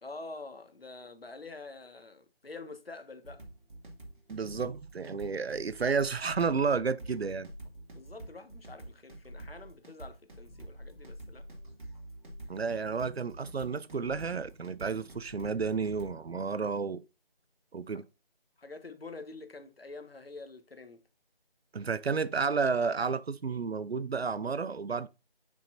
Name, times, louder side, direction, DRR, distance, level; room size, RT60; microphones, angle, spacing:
voice 1, 0.0-3.4 7.2-7.3 7.9-11.4 18.6-21.0, left 3 dB, 75° left, 1.5 m, -46 dB
sound 1, 3.2-16.2, right 1 dB, 55° right, 2.2 m, -47 dB
voice 2, 4.3-7.5 12.5-17.0 17.7-18.0 21.7-25.1, right 5 dB, 90° right, 0.7 m, -31 dB
7.4 x 5.8 x 2.5 m
figure-of-eight pair, 170°, 30 cm